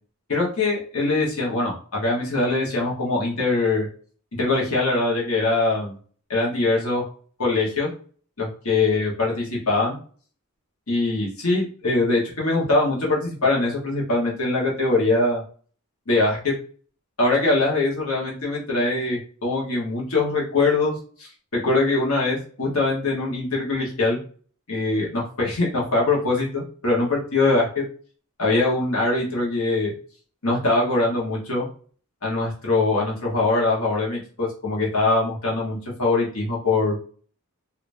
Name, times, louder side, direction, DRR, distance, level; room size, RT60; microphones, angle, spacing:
voice 1, 0.3-3.9 4.3-5.9 6.3-7.1 7.4-7.9 8.4-10.0 10.9-15.4 16.1-16.5 17.2-21.3 21.6-24.2 24.7-27.8 28.4-29.9 30.4-31.7 32.2-37.0, left 2 dB, 80° left, -4 dB, 1.3 m, -22 dB
3.4 x 2.8 x 2.6 m, 0.43 s
head